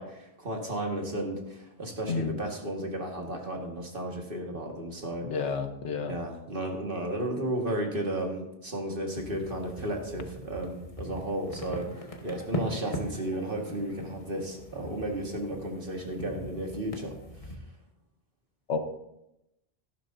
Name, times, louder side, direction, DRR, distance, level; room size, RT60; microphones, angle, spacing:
voice 1, 0.0-5.3 6.0-17.2 17.4-17.5, right 1 dB, 50° right, 1 dB, 1.9 m, -34 dB
voice 2, 2.1-2.4 5.2-6.2 18.7-18.8, left 5 dB, 80° left, 7 dB, 1.3 m, -30 dB
sound 1, 9.2-17.5, equal, 30° left, 1.4 m, -40 dB
13.5 x 11.5 x 2.7 m, 0.87 s
omnidirectional pair, 1.2 m